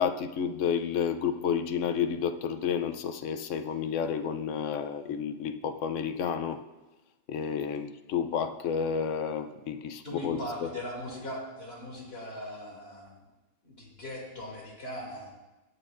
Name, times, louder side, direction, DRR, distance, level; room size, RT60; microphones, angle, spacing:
voice 1, 0.0-6.6 7.3-10.7, left 7 dB, 75° left, 9 dB, 1.0 m, -31 dB
voice 2, 10.0-13.2 13.6-15.3, left 1 dB, 55° left, -3 dB, 2.9 m, -39 dB
17.0 x 8.5 x 2.5 m, 1.1 s
omnidirectional pair, 1.3 m